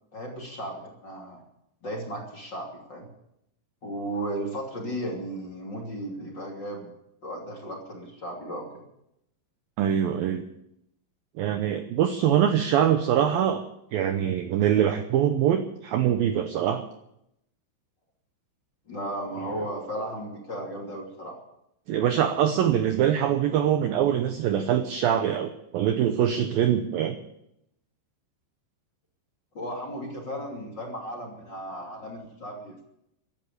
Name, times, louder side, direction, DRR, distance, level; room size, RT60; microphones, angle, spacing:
voice 1, 0.1-1.4 1.8-3.1 3.8-6.9 7.2-8.8 18.9-21.4 29.5-32.8, right 1 dB, 30° left, -1 dB, 2.7 m, -35 dB
voice 2, 9.8-10.4 11.4-13.6 13.9-16.8 21.9-27.2, right 9 dB, 85° right, 7 dB, 2.0 m, -23 dB
15.5 x 10.5 x 8.6 m, 0.80 s
omnidirectional pair, 5.4 m